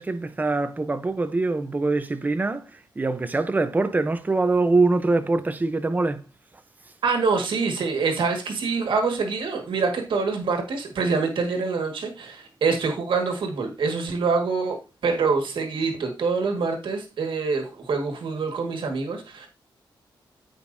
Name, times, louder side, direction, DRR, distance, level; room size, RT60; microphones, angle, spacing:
voice 1, 0.0-6.2, right 3 dB, 20° right, 0.7 m, -24 dB
voice 2, 7.0-19.5, right 4 dB, 75° right, 1.8 m, -25 dB
14.0 x 5.2 x 2.7 m
wide cardioid pair, 155°, 9 cm